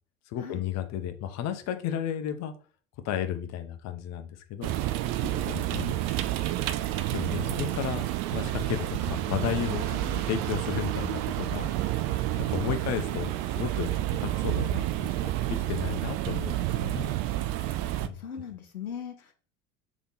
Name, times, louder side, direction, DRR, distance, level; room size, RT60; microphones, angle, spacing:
voice 1, 0.3-2.5 3.0-4.7 5.5-6.0 7.1-8.0 8.3-9.9 10.2-13.9 14.2-17.1 18.0-18.2, left 9 dB, 40° left, 8 dB, 0.7 m, -33 dB
sound 1, 4.6-18.1, right 15 dB, 40° right, 0.4 m, -30 dB
voice 2, 5.2-5.7 7.6-7.8 9.8-10.2 12.6-12.9 17.7-17.8 18.1-19.3, left 7 dB, 90° left, 4 dB, 0.7 m, -40 dB
3.6 x 3.5 x 3.9 m, 0.40 s
figure-of-eight pair, 75°, 42 cm